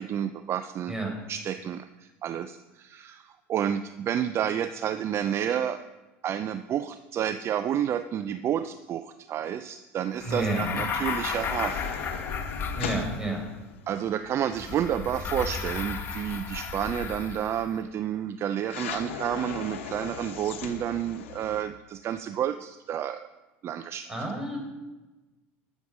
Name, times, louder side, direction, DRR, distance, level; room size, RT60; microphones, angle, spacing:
voice 1, 0.0-0.9 1.3-5.8 6.2-11.9 13.9-23.3 23.6-24.1, right 9 dB, 40° right, 11 dB, 0.5 m, -30 dB
sound 1, 10.2-14.7 18.7-21.6, left 7 dB, 80° left, 1.2 m, -39 dB
sound 2, 10.2-13.5 14.5-17.7, left 5 dB, 35° left, 1.5 m, -34 dB
voice 2, 10.2-10.8 12.7-13.4 24.1-24.6, right 1 dB, 10° right, 0 dB, 4.6 m, -30 dB
12.0 x 7.1 x 6.3 m, 1.1 s
hypercardioid pair, 90°, 7 cm